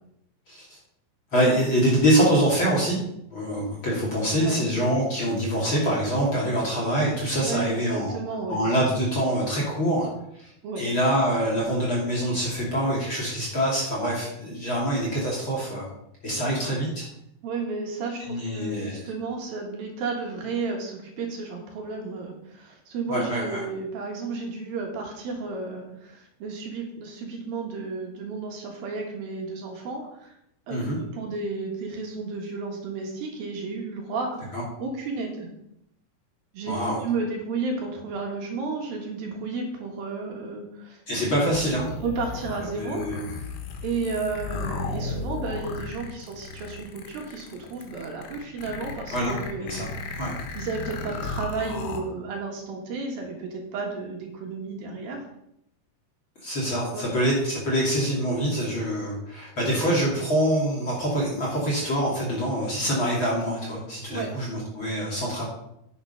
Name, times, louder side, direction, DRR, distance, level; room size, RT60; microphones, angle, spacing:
voice 1, 0.5-0.8 1.3-3.0 3.3-8.2 8.5-15.9 16.2-17.1 18.3-19.0 23.1-23.6 30.7-31.0 34.5-34.6 36.7-37.0 41.1-41.9 42.7-43.2 49.1-49.3 49.7-49.9 50.2-50.3 56.4-65.4, equal, 35° left, -4 dB, 2.8 m, -25 dB
voice 2, 7.4-8.6 10.6-10.9 16.4-16.6 17.4-30.3 30.7-35.5 36.5-41.0 42.0-43.5 43.8-50.2 50.5-55.2 56.9-57.1 64.1-64.3, right 4 dB, 65° right, 1 dB, 3.1 m, -33 dB
sound 1, 41.5-52.0, left 3 dB, 80° left, 3.4 m, -35 dB
10.0 x 7.4 x 5.6 m, 0.79 s
omnidirectional pair, 4.8 m